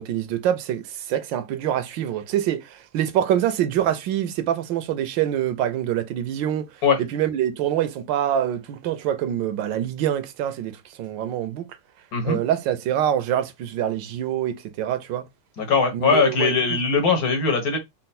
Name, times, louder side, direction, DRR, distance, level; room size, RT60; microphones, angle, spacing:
voice 1, 0.0-6.7 7.1-11.7 12.2-15.2 15.9-16.8, right 11 dB, 90° right, 1.4 m, -25 dB
voice 2, 15.6-17.8, left 5 dB, 60° left, 1.5 m, -20 dB
4.4 x 2.0 x 4.1 m
omnidirectional pair, 2.0 m